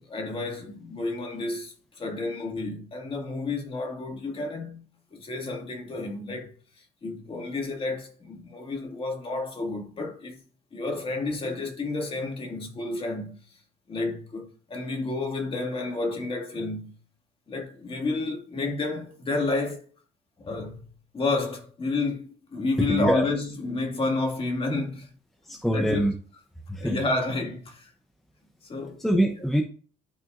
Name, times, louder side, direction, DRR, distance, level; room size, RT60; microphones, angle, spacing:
voice 1, 0.0-4.8 5.1-10.4 10.7-13.4 13.9-16.9 17.5-19.9 20.4-20.8 21.1-25.1 25.5-26.0 26.8-27.9 28.6-29.0, left 3 dB, 30° left, 2.0 m, -30 dB
voice 2, 22.8-23.3 25.4-26.1 26.7-27.0 29.0-29.6, equal, ahead, 0.7 m, -24 dB
11.5 x 4.2 x 2.5 m
cardioid pair, 110°, 17 cm